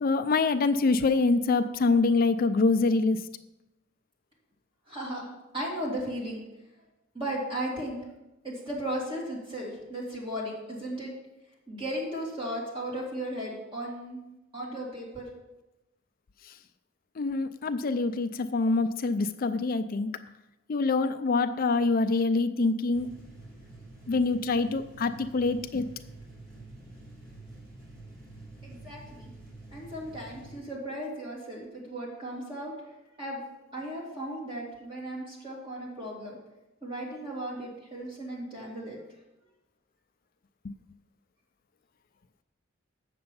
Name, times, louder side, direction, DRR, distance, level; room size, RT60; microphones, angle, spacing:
voice 1, 0.0-3.3 17.2-20.1 20.7-23.1 24.1-25.9, left 3 dB, 45° left, 11 dB, 0.4 m, -25 dB
voice 2, 4.9-6.4 7.1-8.0 8.4-11.1 11.7-14.2 14.5-15.3 28.6-29.3 29.7-32.7 33.2-33.4 33.7-36.4 36.8-39.0, right 1 dB, 25° right, -4 dB, 2.6 m, -36 dB
sound 1, 22.9-30.6, right 2 dB, 45° right, 3.8 m, -48 dB
7.9 x 6.7 x 5.4 m, 0.95 s
head